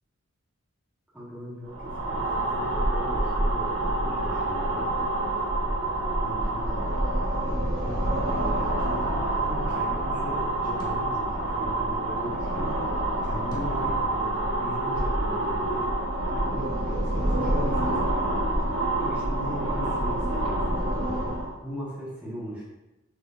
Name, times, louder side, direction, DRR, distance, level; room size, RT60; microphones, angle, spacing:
voice 1, 1.1-5.7 6.2-6.9 7.4-12.9 13.2-15.9 16.4-18.3 19.0-21.2 21.6-22.6, equal, 5° right, -8 dB, 1.5 m, -38 dB
sound 1, 1.7-21.5, right 1 dB, 85° right, 1.2 m, -27 dB
sound 2, 10.8-12.0 13.5-14.7, left 2 dB, 20° left, 0.7 m, -45 dB
6.5 x 3.1 x 2.5 m, 1.0 s
head